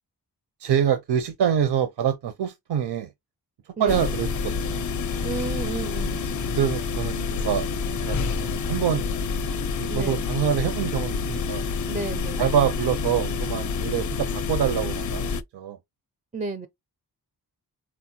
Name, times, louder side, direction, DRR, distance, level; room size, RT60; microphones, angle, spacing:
voice 1, 0.6-3.1 3.8-4.9 6.6-7.7 8.1-9.1 9.7-11.6 12.4-15.8, right 9 dB, 75° right, 0.6 m, -25 dB
voice 2, 3.8-4.1 5.2-6.2 9.9-10.3 11.9-12.5 16.3-16.7, right 4 dB, 20° right, 0.4 m, -32 dB
sound 1, 3.9-15.4, left 5 dB, 50° left, 0.4 m, -28 dB
4.5 x 2.1 x 2.7 m
wide cardioid pair, 120°, 40 cm